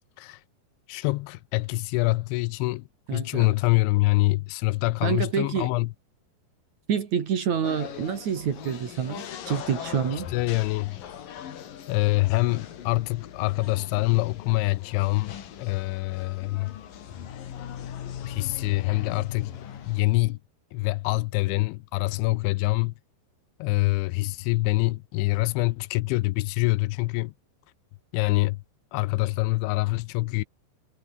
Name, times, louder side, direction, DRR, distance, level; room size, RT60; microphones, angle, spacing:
voice 1, 0.9-5.9 10.3-11.0 11.9-16.7 18.2-19.5 19.9-20.4 20.7-22.9 23.6-27.3 28.1-28.6 28.9-30.4, left 21 dB, 85° left, 3.0 m, -25 dB
voice 2, 3.1-3.5 5.0-5.7 6.9-10.3, right 7 dB, 50° right, 2.7 m, -27 dB
sound 1, 7.6-20.0, left 9 dB, 55° left, 3.4 m, -40 dB
omnidirectional pair, 5.3 m